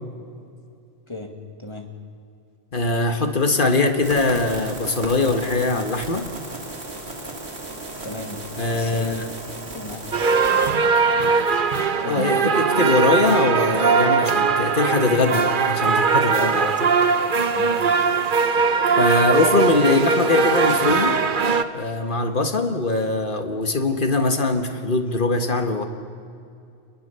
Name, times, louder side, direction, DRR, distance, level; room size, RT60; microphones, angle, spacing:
voice 1, 1.6-2.0 8.0-9.3 9.7-10.0 10.4-10.6 12.0-12.2 17.5-17.9, left 2 dB, 25° left, 3 dB, 2.4 m, -36 dB
voice 2, 2.7-6.3 8.6-9.3 12.1-17.0 18.5-18.6 19.0-21.2 21.7-25.8, left 3 dB, 55° left, 5 dB, 1.9 m, -22 dB
sound 1, 4.0-10.7, right 2 dB, 85° right, 2.9 m, -35 dB
sound 2, 10.1-21.6, right 5 dB, 55° right, 1.1 m, -20 dB
29.5 x 21.0 x 7.0 m, 2.5 s
omnidirectional pair, 1.1 m